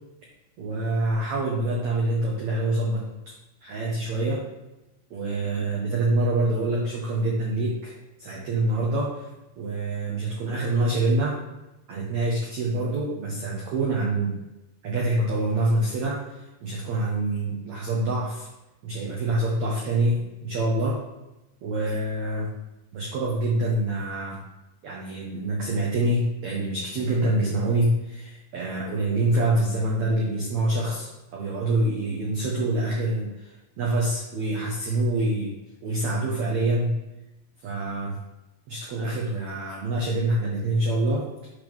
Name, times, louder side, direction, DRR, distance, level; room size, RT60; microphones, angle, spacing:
voice 1, 0.6-3.1 3.6-4.4 5.1-7.9 8.2-9.3 9.6-11.4 11.9-14.4 14.8-18.5 18.8-21.0 21.6-22.5 22.9-24.4 24.8-35.5 35.8-37.0 37.6-38.2 38.7-41.5, right 2 dB, 90° right, -3 dB, 1.5 m, -26 dB
8.5 x 3.6 x 6.1 m, 0.99 s
omnidirectional pair, 4.9 m